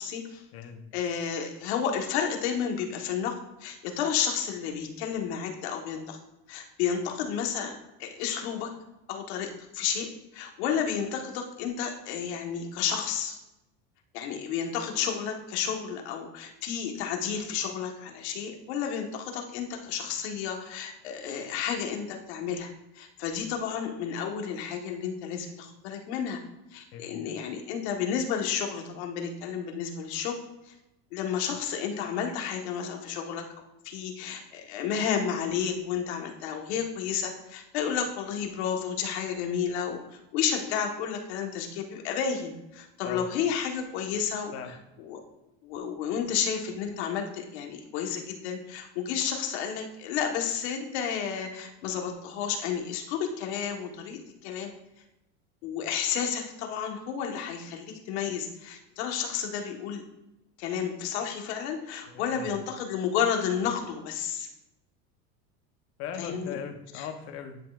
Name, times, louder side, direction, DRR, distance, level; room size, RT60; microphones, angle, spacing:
voice 1, 0.0-0.4 0.9-6.2 6.5-8.7 9.1-13.4 14.1-26.4 26.7-30.4 30.6-30.7 31.1-33.4 33.8-45.2 45.6-54.7 55.6-60.0 60.6-64.5 66.2-66.6 66.9-67.1, left 7 dB, 75° left, 2 dB, 1.4 m, -31 dB
voice 2, 0.5-0.8 26.9-27.2 43.0-43.3 44.5-44.7 62.1-62.5 66.0-67.6, left 7 dB, 45° left, 6 dB, 0.9 m, -39 dB
10.5 x 5.5 x 2.5 m, 0.93 s
supercardioid pair, 150°, 33 cm